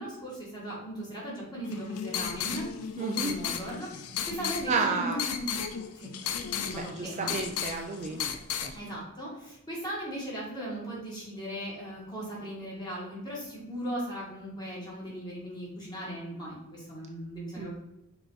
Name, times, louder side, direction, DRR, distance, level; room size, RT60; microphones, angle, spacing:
voice 1, 0.0-2.7 3.0-3.9 4.3-5.7 6.0-6.1 6.4-7.3 8.7-17.7, right 1 dB, 20° left, -5 dB, 2.2 m, -38 dB
sound 1, 1.6-8.7, left 8 dB, 85° left, 0.6 m, -35 dB
voice 2, 3.0-3.4 4.7-5.2 6.7-8.4 8.6-8.8 17.6-17.7, right 4 dB, 30° right, 3 dB, 0.4 m, -31 dB
5.4 x 4.4 x 4.1 m, 0.90 s
head